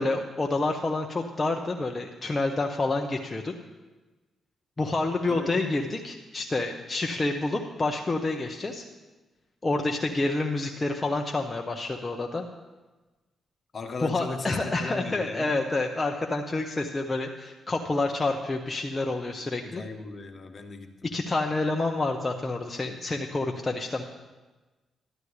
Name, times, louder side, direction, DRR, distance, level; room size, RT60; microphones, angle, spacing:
voice 1, 0.0-3.5 4.8-8.8 9.6-12.4 14.0-19.8 21.0-24.0, left 2 dB, 30° left, 2 dB, 1.0 m, -28 dB
voice 2, 5.3-5.7 13.7-15.6 19.6-21.1, left 3 dB, 50° left, 5 dB, 1.5 m, -37 dB
12.5 x 11.0 x 3.4 m, 1.2 s
hypercardioid pair, 45°, 0 cm